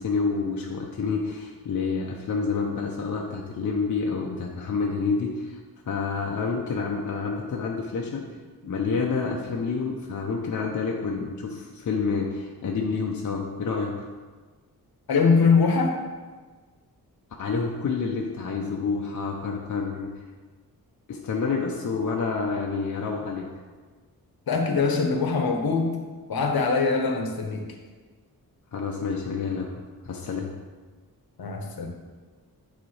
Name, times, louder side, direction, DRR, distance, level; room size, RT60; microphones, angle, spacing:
voice 1, 0.0-5.6 5.9-8.2 8.6-14.1 17.4-20.1 21.1-23.5 28.7-29.7 30.0-30.5, left 4 dB, 50° left, -1 dB, 0.6 m, -28 dB
voice 2, 15.1-15.9 24.5-26.0 26.3-27.6 31.4-31.9, left 4 dB, 70° left, 3 dB, 0.9 m, -22 dB
8.5 x 4.0 x 3.2 m, 1.4 s
wide cardioid pair, 170°, 38 cm